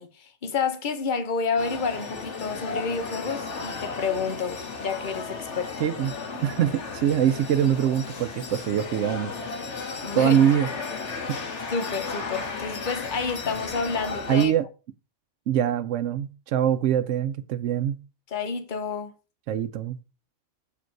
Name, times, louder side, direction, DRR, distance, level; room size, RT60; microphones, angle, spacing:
voice 1, 0.0-5.7 10.0-10.4 11.7-14.5 18.3-19.1, left 5 dB, 45° left, 1.1 m, -29 dB
sound 1, 1.6-14.5, left 4 dB, 75° left, 1.7 m, -34 dB
voice 2, 5.8-6.1 6.4-9.3 10.1-10.7 11.3-11.4 14.3-14.6 15.5-18.0 19.5-20.0, right 10 dB, 90° right, 0.9 m, -23 dB
7.2 x 5.1 x 4.6 m
omnidirectional pair, 1.2 m